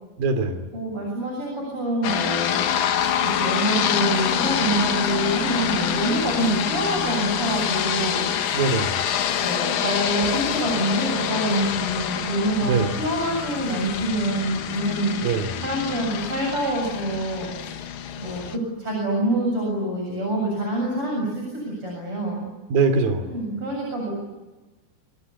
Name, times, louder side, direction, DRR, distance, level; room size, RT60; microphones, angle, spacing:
voice 1, 0.2-0.7 8.5-9.0 12.6-12.9 15.2-15.6 22.7-23.3, right 4 dB, 70° right, 8 dB, 4.8 m, -22 dB
voice 2, 0.7-2.7 3.2-8.3 9.4-15.2 15.6-17.5 18.2-22.5 23.2-24.1, right 1 dB, 35° right, -1 dB, 8.4 m, -26 dB
sound 1, 2.0-18.6, left 9 dB, 70° left, 3.1 m, -26 dB
26.5 x 26.5 x 8.5 m, 1.1 s
omnidirectional pair, 4.4 m